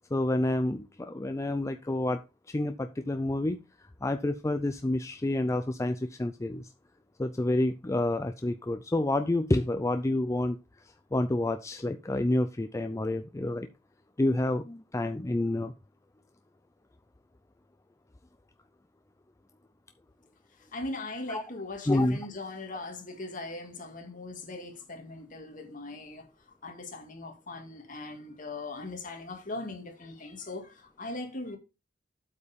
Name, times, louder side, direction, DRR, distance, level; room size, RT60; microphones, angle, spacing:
voice 1, 0.1-2.2 2.5-3.6 4.0-6.7 7.2-10.6 11.1-13.7 14.2-15.7 21.3-21.4 21.9-22.2, left 1 dB, 15° left, 0.4 m, -28 dB
voice 2, 20.7-26.3 26.6-31.6, left 2 dB, 45° left, 2.1 m, -40 dB
8.2 x 5.5 x 5.1 m
head